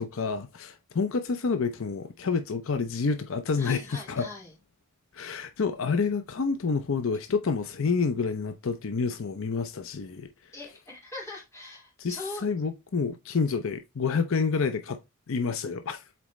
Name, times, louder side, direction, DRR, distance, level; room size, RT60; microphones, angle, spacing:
voice 1, 0.0-4.3 5.1-10.3 12.0-12.2 12.4-15.0 15.3-16.0, left 5 dB, 65° left, 0.6 m, -28 dB
voice 2, 3.6-4.6 10.5-12.5, left 2 dB, 15° left, 2.5 m, -41 dB
7.4 x 4.1 x 3.1 m
head